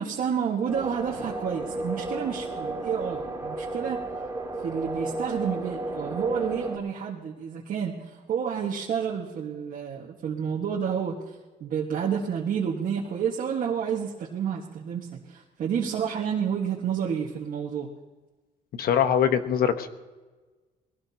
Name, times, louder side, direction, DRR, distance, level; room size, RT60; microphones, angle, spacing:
voice 1, 0.0-4.0 4.6-11.2 11.6-17.9, right 7 dB, 55° right, -4 dB, 1.5 m, -30 dB
sound 1, 0.7-6.8, right 2 dB, 15° right, 3.0 m, -33 dB
voice 2, 18.7-19.9, left 8 dB, 65° left, 9 dB, 1.1 m, -23 dB
21.5 x 17.0 x 2.9 m, 1.3 s
cardioid pair, 140°, 17 cm